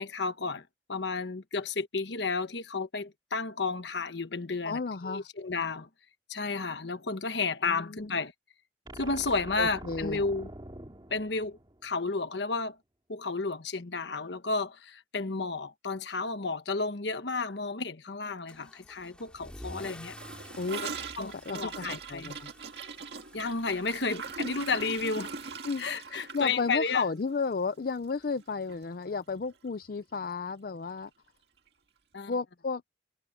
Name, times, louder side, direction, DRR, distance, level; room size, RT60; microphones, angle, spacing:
voice 1, 0.0-5.9 6.3-8.3 8.9-10.5 11.1-12.8 13.1-20.2 20.8-20.9 21.2-22.3 23.3-25.3 25.8-27.1 32.1-32.3, left 4 dB, 70° left, 1.3 m, -32 dB
voice 2, 4.7-5.3 7.6-8.1 9.6-10.2 20.6-20.8 21.2-22.5 25.6-31.1 32.3-32.8, left 4 dB, 50° left, 0.5 m, -33 dB
sound 1, 8.8-12.2, right 1 dB, 25° right, 2.2 m, -45 dB
Car / Engine starting / Accelerating revving vroom, 18.5-25.8, left 1 dB, 5° left, 2.4 m, -50 dB
Gurgling / Toilet flush, 20.2-28.4 28.7-28.8 29.1-29.6 29.8-29.9 30.2-30.3 31.3-31.4, right 5 dB, 65° right, 2.1 m, -41 dB
head